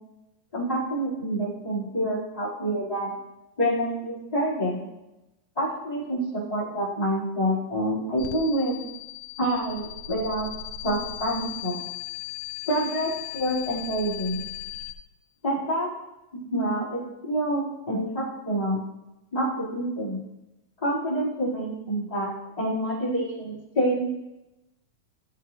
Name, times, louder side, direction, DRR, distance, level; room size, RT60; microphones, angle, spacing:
voice 1, 0.5-3.1 3.6-4.9 5.6-8.8 9.4-10.5 10.8-11.8 12.7-14.5 15.4-15.9 16.3-18.8 19.3-20.2 20.8-22.3 22.6-24.1, right 1 dB, 10° left, -10 dB, 4.4 m, -27 dB
sound 1, 8.2-14.9, left 12 dB, 90° left, 2.6 m, -37 dB
17.0 x 7.8 x 3.3 m, 0.98 s
omnidirectional pair, 4.3 m